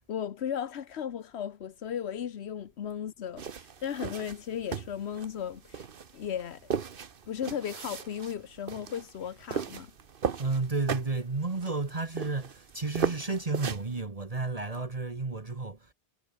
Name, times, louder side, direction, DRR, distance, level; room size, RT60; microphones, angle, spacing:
voice 1, 0.0-5.9 6.1-6.7 7.3-9.9, left 8 dB, 85° left, 1.2 m, -36 dB
sound 1, 3.4-14.0, right 6 dB, 55° right, 1.2 m, -37 dB
voice 2, 10.4-15.9, right 3 dB, 35° right, 1.4 m, -32 dB
omnidirectional pair, 1.1 m